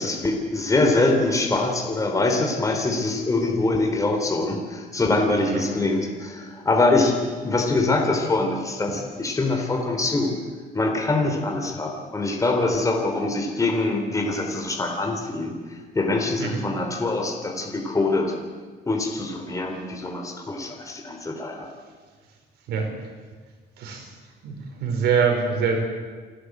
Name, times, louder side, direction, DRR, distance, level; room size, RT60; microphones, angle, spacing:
voice 1, 0.0-7.2 7.4-10.3 10.7-18.3 18.9-21.7, left 2 dB, 20° left, 2 dB, 3.7 m, -24 dB
voice 2, 23.8-24.1 24.4-24.5 24.8-25.8, right 6 dB, 75° right, 3 dB, 5.1 m, -24 dB
28.0 x 11.5 x 8.1 m, 1.5 s
cardioid pair, 110°, 17 cm